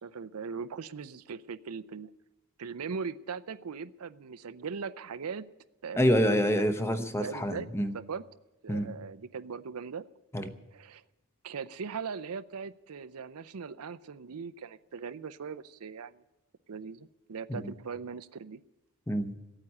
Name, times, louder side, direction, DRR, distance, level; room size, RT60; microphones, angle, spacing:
voice 1, 0.0-2.1 2.6-5.4 5.8-6.5 7.2-7.7 7.9-8.2 8.6-10.0 10.7-11.0 11.4-16.2 16.7-18.6, right 5 dB, 90° right, 13 dB, 0.6 m, -39 dB
voice 2, 6.0-8.0 8.7-9.0 10.3-10.6 17.5-17.7 19.1-19.4, equal, 10° left, 9 dB, 0.8 m, -27 dB
15.0 x 8.9 x 9.8 m, 1.0 s
head